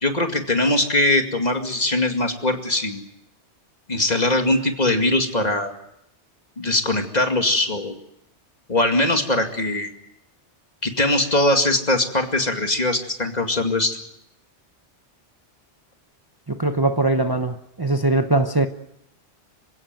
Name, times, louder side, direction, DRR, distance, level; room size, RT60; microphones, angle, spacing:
voice 1, 0.0-3.0 3.9-5.7 6.6-7.9 8.7-9.9 10.8-14.0, left 1 dB, 35° left, 2.4 m, -21 dB
voice 2, 16.5-18.7, right 2 dB, 20° right, 0.9 m, -21 dB
27.0 x 16.0 x 9.1 m
omnidirectional pair, 1.2 m